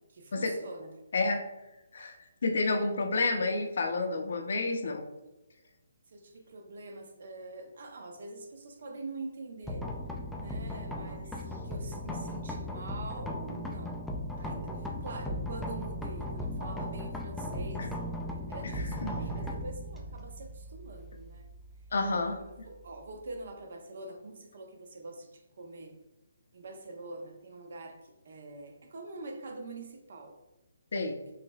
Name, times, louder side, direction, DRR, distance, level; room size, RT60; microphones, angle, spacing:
voice 1, 0.1-0.9 6.1-9.8 10.4-14.0 14.4-17.9 18.5-21.5 22.3-22.4 22.6-26.0 26.5-30.4, right 2 dB, 60° right, 4 dB, 0.7 m, -45 dB
voice 2, 1.1-1.4 1.9-2.2 2.4-5.0 17.8-17.9 18.6-19.1 21.9-22.4 30.9-31.2, left 3 dB, 65° left, 5 dB, 0.6 m, -30 dB
sound 1, 9.6-23.5, left 1 dB, 5° left, 0.3 m, -38 dB
4.9 x 3.0 x 2.3 m, 1.0 s
hypercardioid pair, 155°, 0 cm